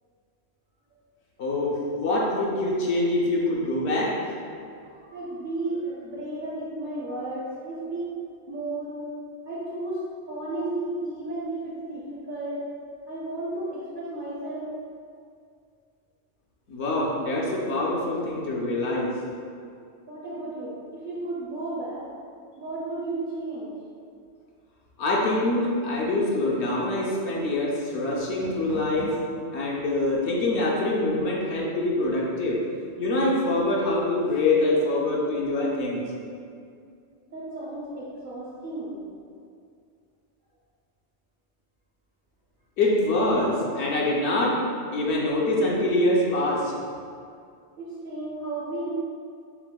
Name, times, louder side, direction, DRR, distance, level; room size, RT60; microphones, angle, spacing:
voice 1, 1.4-4.3 16.7-19.2 25.0-29.2 29.5-32.6 33.0-36.0 42.8-44.6 44.9-46.7, left 2 dB, 70° left, -4 dB, 0.9 m, -25 dB
voice 2, 5.1-8.1 8.5-9.0 9.4-12.6 13.1-14.7 20.0-22.1 22.6-23.7 37.3-39.0 47.8-48.9, right 2 dB, 55° right, -7 dB, 0.7 m, -33 dB
Door, 28.1-29.4, left 1 dB, 80° right, 1.2 m, -38 dB
5.8 x 2.0 x 2.2 m, 2.3 s
omnidirectional pair, 1.2 m